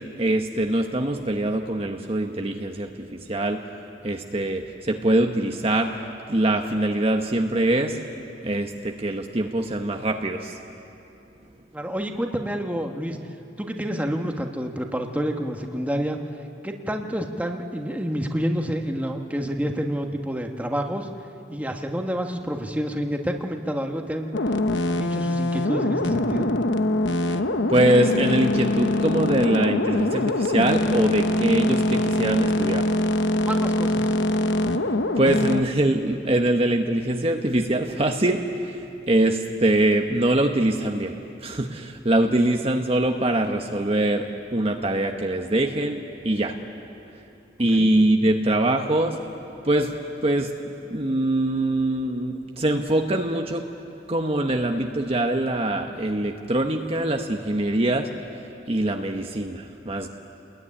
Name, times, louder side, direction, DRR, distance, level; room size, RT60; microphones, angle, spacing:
voice 1, 0.2-3.6 4.0-5.9 6.3-8.0 8.4-10.6 27.3-27.4 27.7-32.8 35.2-41.1 41.4-46.5 47.6-49.2 49.6-50.0 50.2-53.7 54.1-58.1 58.7-60.1, right 1 dB, 35° right, 3 dB, 1.1 m, -23 dB
voice 2, 11.7-13.2 13.6-16.2 16.6-21.1 21.5-24.6 24.8-26.5 33.4-34.1 42.2-42.3 47.7-47.9, equal, 10° right, 3 dB, 1.5 m, -28 dB
sound 1, 24.3-35.6, left 1 dB, 80° left, 1.0 m, -23 dB
28.5 x 21.0 x 10.0 m, 2.8 s
head